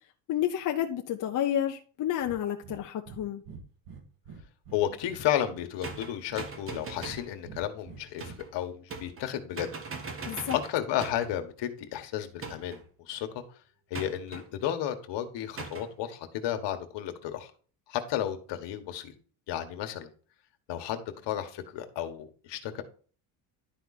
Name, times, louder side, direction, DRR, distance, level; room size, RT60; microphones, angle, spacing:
voice 1, 0.3-3.4 10.3-10.6, left 11 dB, 45° left, 3 dB, 0.8 m, -30 dB
Breathing, 2.2-2.4 2.6-3.2 3.5-4.8 5.1-6.0 6.3-7.2 7.5-8.4, right 5 dB, 60° right, 1.9 m, -46 dB
voice 2, 4.7-9.7 10.5-12.8 13.1-13.4 13.9-17.5 17.9-19.1 19.5-20.1 20.7-22.8, left 11 dB, 65° left, 6 dB, 1.5 m, -33 dB
sound 1, 5.8-7.3 8.2-8.5 8.9-9.3 9.6-11.4 12.4-12.9 13.9-14.5 15.6-15.9, right 4 dB, 30° right, 1.2 m, -40 dB
11.5 x 4.9 x 4.2 m, 0.40 s
cardioid pair, 175°, 45 cm